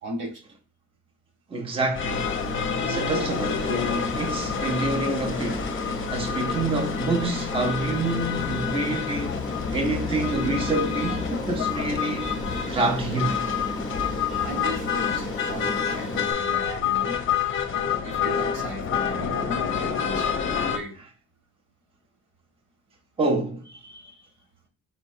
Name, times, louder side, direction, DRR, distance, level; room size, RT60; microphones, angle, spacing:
voice 1, 0.0-0.4 14.3-17.2 17.6-20.3 20.6-21.0 23.7-24.3, right 1 dB, 65° right, 1.6 m, -37 dB
voice 2, 1.5-2.3 2.8-9.3 9.7-13.4 23.2-23.6, right 2 dB, 15° right, 0.6 m, -27 dB
sound 1, 1.9-20.8, left 7 dB, 40° left, 0.6 m, -28 dB
Aircraft, 2.1-16.3, left 2 dB, 15° left, 0.9 m, -33 dB
4.2 x 3.0 x 2.6 m
cardioid pair, 120°, 33 cm